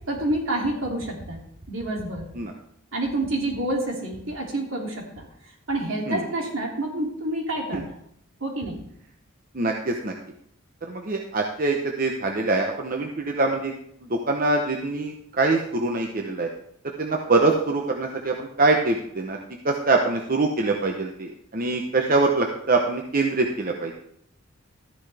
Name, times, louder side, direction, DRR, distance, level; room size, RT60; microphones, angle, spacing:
voice 1, 0.1-1.4 1.7-2.2 2.9-5.3 5.7-7.8 8.4-8.8, right 1 dB, 70° right, -1 dB, 2.8 m, -28 dB
voice 2, 9.5-10.1 10.8-13.7 14.1-16.5 17.0-19.4 19.6-23.9, right 3 dB, 40° right, 2 dB, 0.9 m, -24 dB
13.5 x 10.0 x 3.5 m, 0.72 s
head